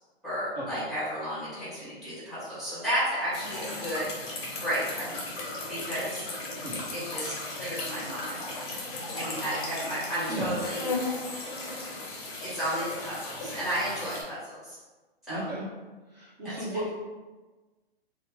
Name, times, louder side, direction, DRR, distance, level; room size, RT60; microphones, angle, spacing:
voice 1, 0.2-4.1 4.6-5.3 5.7-6.2 6.9-8.5 9.1-10.9 12.4-14.8 15.3-15.5 16.4-16.5, equal, ahead, -10 dB, 1.2 m, -33 dB
sound 1, 3.3-14.2, left 2 dB, 25° left, 0.7 m, -36 dB
voice 2, 15.3-15.6 16.1-16.9, right 1 dB, 40° right, -7 dB, 1.0 m, -34 dB
3.0 x 2.1 x 3.3 m, 1.2 s
hypercardioid pair, 135°, 32 cm